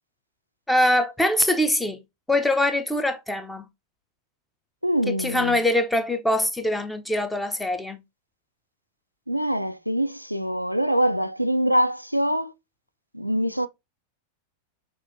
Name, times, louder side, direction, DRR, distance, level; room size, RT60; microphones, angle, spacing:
voice 1, 0.7-2.0 2.3-3.7 5.1-8.0, left 1 dB, 5° left, 0.7 m, -23 dB
voice 2, 4.8-5.6 9.3-12.5 13.1-13.7, equal, 90° right, 0.3 m, -24 dB
5.9 x 2.5 x 2.6 m
figure-of-eight pair, 90°, 0 cm